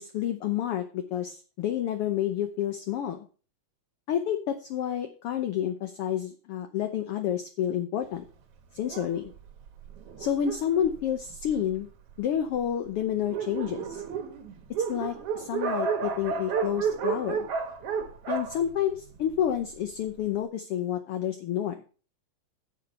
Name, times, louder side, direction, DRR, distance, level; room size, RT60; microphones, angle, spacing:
voice 1, 0.0-3.3 4.1-8.3 8.7-9.3 10.2-11.9 12.2-14.0 14.9-17.5 18.3-21.8, left 10 dB, 65° left, 6 dB, 1.5 m, -29 dB
Dog, 8.8-11.8 12.5-12.6 12.9-13.0 13.2-19.6, right 6 dB, 60° right, 1.9 m, -32 dB
9.5 x 7.2 x 5.5 m, 0.38 s
omnidirectional pair, 3.4 m